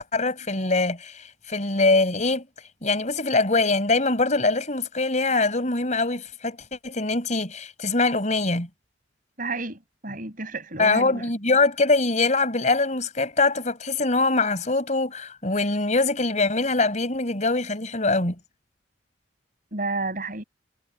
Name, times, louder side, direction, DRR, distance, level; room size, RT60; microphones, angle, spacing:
voice 1, 0.0-2.4 2.8-6.6 6.8-8.7 10.8-18.3, left 3 dB, 40° left, 5.1 m, -23 dB
voice 2, 9.4-11.2 19.7-20.4, right 3 dB, 45° right, 6.2 m, -31 dB
head